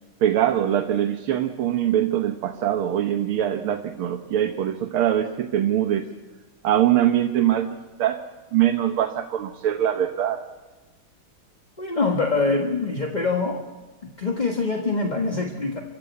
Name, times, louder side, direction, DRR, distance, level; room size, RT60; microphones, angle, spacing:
voice 1, 0.2-6.1 6.6-8.2 8.5-10.4, right 11 dB, 75° right, 5 dB, 1.9 m, -23 dB
voice 2, 11.8-13.6 14.0-15.8, left 3 dB, 25° left, 2 dB, 1.3 m, -24 dB
27.5 x 15.0 x 8.3 m, 1.2 s
omnidirectional pair, 2.4 m